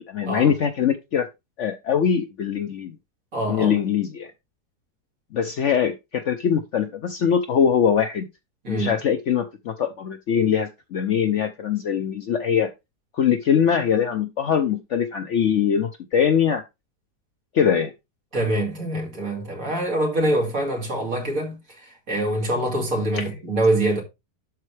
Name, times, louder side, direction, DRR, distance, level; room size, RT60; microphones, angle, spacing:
voice 1, 0.1-1.3 1.6-2.9 3.5-4.3 5.3-8.3 8.7-12.7 13.1-16.6 17.5-17.9 23.1-23.3, left 8 dB, 60° left, 0.8 m, -22 dB
voice 2, 3.3-3.8 8.6-8.9 18.3-21.6 21.8-24.0, right 1 dB, 55° right, 2.9 m, -24 dB
12.0 x 4.3 x 3.3 m
omnidirectional pair, 1.7 m